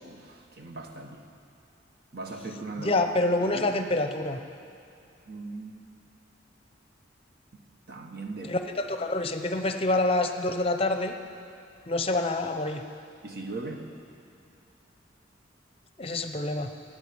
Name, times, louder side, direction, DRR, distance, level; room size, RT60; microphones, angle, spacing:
voice 1, 0.0-1.2 2.1-3.0 3.4-3.6 5.2-5.7 7.9-8.5 13.2-13.9, right 2 dB, 55° right, 3 dB, 1.4 m, -39 dB
voice 2, 2.8-4.4 8.4-11.2 11.9-12.8 16.0-16.7, left 2 dB, 30° left, 7 dB, 0.8 m, -27 dB
12.5 x 9.0 x 8.7 m, 2.5 s
head